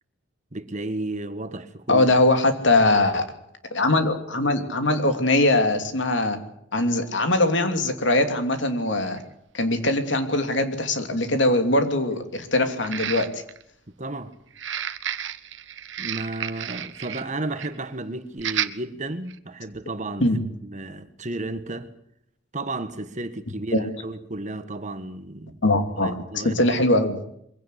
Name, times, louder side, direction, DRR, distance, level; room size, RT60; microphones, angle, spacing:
voice 1, 0.5-2.1 14.0-14.3 16.0-20.3 20.6-21.9 22.5-25.6 26.0-27.1, right 2 dB, 40° right, 1.6 m, -33 dB
voice 2, 1.9-3.2 3.7-6.4 6.7-9.2 9.5-13.4 20.2-20.4 23.7-23.8 25.6-27.2, left 2 dB, 80° left, 2.9 m, -21 dB
sound 1, 8.1-8.2 9.2-9.3 9.7-9.8 12.8-13.6 14.5-17.3 17.6-17.8 18.4-18.7 19.3-19.4, right 9 dB, 80° right, 1.0 m, -32 dB
23.0 x 16.5 x 8.3 m
head